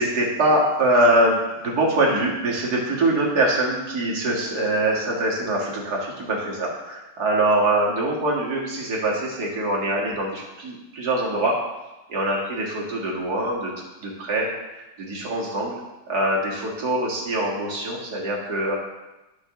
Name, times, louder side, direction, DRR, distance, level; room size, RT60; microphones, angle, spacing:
voice 1, 0.0-11.5 12.1-13.7 14.0-15.8 16.1-18.8, right 1 dB, 50° right, -3 dB, 2.2 m, -23 dB
12.5 x 5.3 x 3.7 m, 1.0 s
omnidirectional pair, 2.2 m